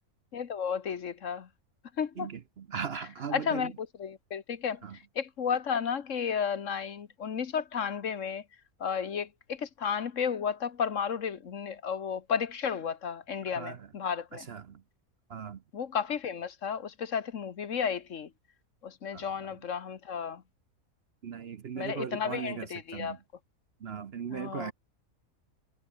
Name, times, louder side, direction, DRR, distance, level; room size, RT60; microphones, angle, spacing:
voice 1, 0.3-1.5 2.0-2.3 3.3-8.4 8.8-14.5 15.7-18.3 18.8-20.4 21.8-23.2 24.3-24.7, left 7 dB, 60° left, 1.5 m, -33 dB
voice 2, 2.2-3.7 4.8-5.0 13.5-13.8 14.3-14.8 15.3-15.6 19.1-19.3 21.2-22.7 22.9-23.2 23.8-24.7, right 7 dB, 50° right, 0.9 m, -38 dB
omnidirectional pair, 1.5 m